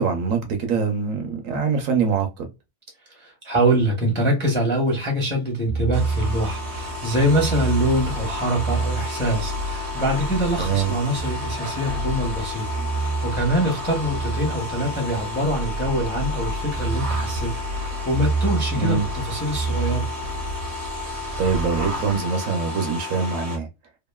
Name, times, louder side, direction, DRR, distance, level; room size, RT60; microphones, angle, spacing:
voice 1, 0.0-2.5 10.6-10.9 18.8-19.0 21.4-23.7, right 5 dB, 65° right, 0.9 m, -23 dB
voice 2, 3.1-20.1, right 1 dB, 15° left, 0.4 m, -24 dB
sound 1, 5.7-22.2, right 3 dB, 90° right, 1.1 m, -29 dB
sound 2, 5.9-23.6, left 3 dB, 40° right, 0.5 m, -33 dB
2.9 x 2.4 x 2.2 m
omnidirectional pair, 1.6 m